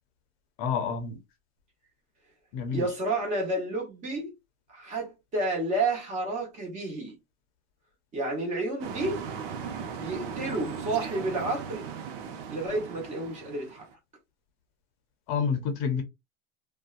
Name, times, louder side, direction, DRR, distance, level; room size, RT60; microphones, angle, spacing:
voice 1, 0.6-1.2 2.5-2.9 15.3-16.0, left 6 dB, 50° left, 0.6 m, -28 dB
voice 2, 2.7-4.3 4.7-7.2 8.1-9.2 10.0-11.9 12.5-13.8, right 2 dB, 25° right, 1.1 m, -30 dB
sound 1, 8.8-13.9, right 6 dB, 60° right, 0.7 m, -38 dB
2.6 x 2.2 x 2.4 m
supercardioid pair, 160°, 30 cm